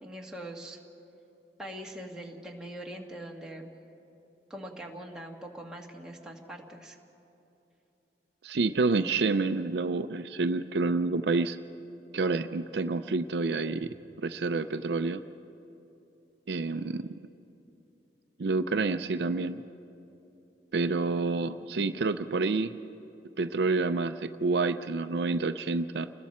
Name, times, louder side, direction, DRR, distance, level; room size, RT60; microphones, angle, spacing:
voice 1, 0.0-0.8 1.6-3.7 4.5-7.0, right 1 dB, 5° right, -1 dB, 1.7 m, -42 dB
voice 2, 8.4-11.6 12.1-15.2 16.5-17.1 18.4-19.6 20.7-22.7 23.4-26.1, right 3 dB, 65° right, 10 dB, 0.5 m, -28 dB
29.5 x 21.0 x 4.3 m, 2.9 s
head